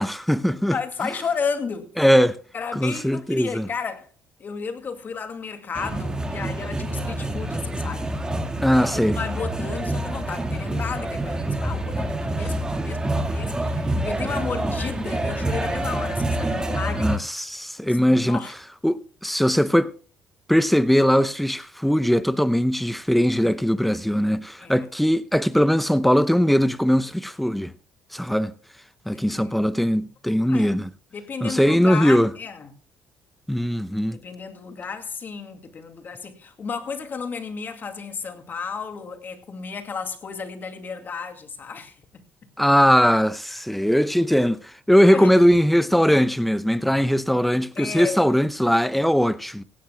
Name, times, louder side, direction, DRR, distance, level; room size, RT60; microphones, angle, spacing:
voice 1, 0.0-0.8 2.0-2.4 2.7-3.7 8.6-9.2 12.4-12.5 17.0-18.4 18.8-19.9 20.5-27.7 28.1-28.5 29.1-30.9 31.4-32.3 33.5-34.2 42.6-49.6, equal, ahead, 0.7 m, -20 dB
voice 2, 0.7-1.9 2.5-4.1 4.4-8.1 8.8-17.2 17.8-18.5 24.6-24.8 29.1-29.6 30.5-30.8 31.1-32.7 34.1-42.0 45.1-45.3 47.8-48.3, left 5 dB, 40° left, 2.3 m, -33 dB
sound 1, 5.7-17.2, right 1 dB, 15° right, 1.8 m, -27 dB
17.5 x 16.0 x 2.2 m
cardioid pair, 90°, 5 cm